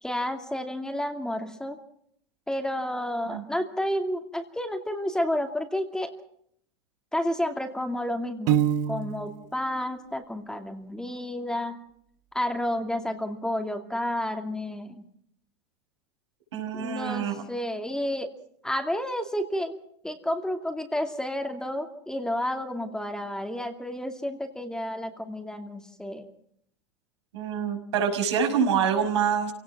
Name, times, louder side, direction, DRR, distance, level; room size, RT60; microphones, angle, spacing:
voice 1, 0.0-1.8 2.5-6.1 7.1-8.6 8.9-11.8 12.3-15.0 16.7-18.3 18.6-19.7 20.0-26.3, left 1 dB, 5° left, 5 dB, 2.5 m, -30 dB
Piano, 8.5-9.5, right 10 dB, 55° right, 1.4 m, -25 dB
voice 2, 16.5-17.4 27.3-29.5, right 7 dB, 80° right, 3 dB, 6.0 m, -26 dB
28.0 x 17.5 x 6.0 m, 0.68 s
hypercardioid pair, 110°, 14 cm